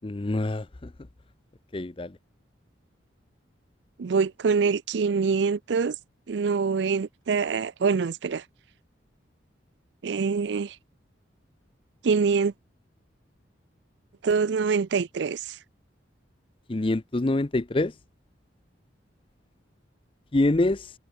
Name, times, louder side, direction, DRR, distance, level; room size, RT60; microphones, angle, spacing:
voice 1, 0.0-0.9 1.7-2.1 16.7-17.9 20.3-20.9, left 2 dB, 25° left, 0.6 m, -25 dB
voice 2, 4.0-6.0 6.3-8.4 10.0-10.8 12.0-12.5 14.2-15.6, right 5 dB, 65° right, 0.4 m, -25 dB
head